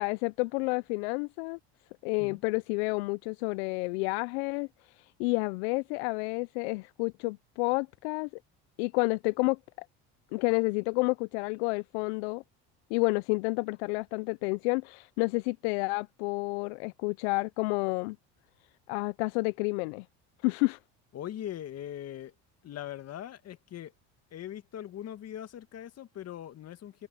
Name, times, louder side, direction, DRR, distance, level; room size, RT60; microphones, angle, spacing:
voice 1, 0.0-1.6 2.0-4.7 5.0-8.3 8.8-9.9 10.3-12.4 12.9-18.2 18.9-20.0 20.4-20.8, left 28 dB, 80° left, 0.5 m, -30 dB
voice 2, 21.1-22.3 22.6-23.9 24.3-27.1, left 11 dB, 50° left, 2.0 m, -41 dB
supercardioid pair, 80°, 33 cm